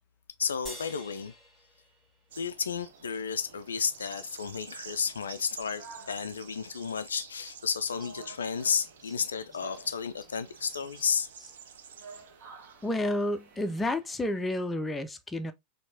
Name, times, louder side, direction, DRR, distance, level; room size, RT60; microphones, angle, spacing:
voice 1, 0.4-1.3 2.3-11.3, left 6 dB, 70° left, 0.3 m, -32 dB
sound 1, 0.7-3.2, equal, 10° right, 1.8 m, -48 dB
sound 2, 2.3-14.6, right 4 dB, 40° right, 1.1 m, -54 dB
sound 3, 2.3-14.0, right 7 dB, 60° right, 0.5 m, -51 dB
voice 2, 12.8-15.5, left 1 dB, 10° left, 0.5 m, -30 dB
4.4 x 2.9 x 2.7 m
figure-of-eight pair, 90°, 0 cm